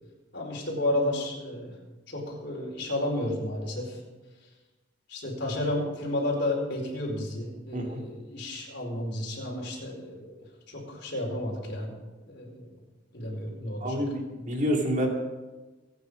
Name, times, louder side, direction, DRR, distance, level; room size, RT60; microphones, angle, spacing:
voice 1, 0.3-1.7 2.1-4.0 5.1-11.9 12.3-12.7 13.1-14.0, left 1 dB, 55° left, -1 dB, 4.5 m, -32 dB
voice 2, 13.8-15.1, equal, 35° right, 1 dB, 2.6 m, -28 dB
24.0 x 9.4 x 5.1 m, 1.2 s
head